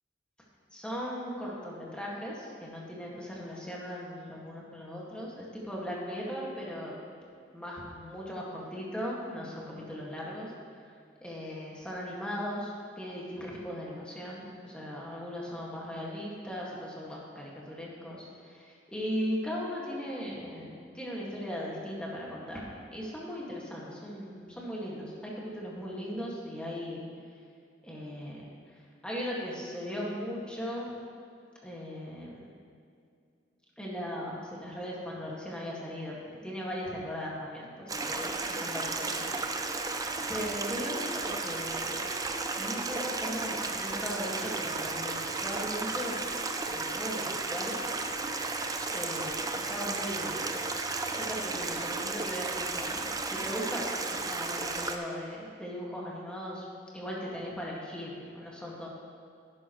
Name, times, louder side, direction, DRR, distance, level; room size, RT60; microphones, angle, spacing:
voice 1, 0.7-6.9 7.5-10.5 11.2-27.0 27.8-28.4 29.0-30.9 31.6-32.4 33.8-39.3 39.6-39.9 40.3-42.0 42.6-46.2 46.6-47.8 48.9-50.6 51.1-56.7 56.9-58.9, equal, 5° left, -5 dB, 1.9 m, -38 dB
Stream, 37.9-55.0, right 3 dB, 20° right, 0.5 m, -34 dB
11.5 x 11.0 x 3.1 m, 2.3 s
head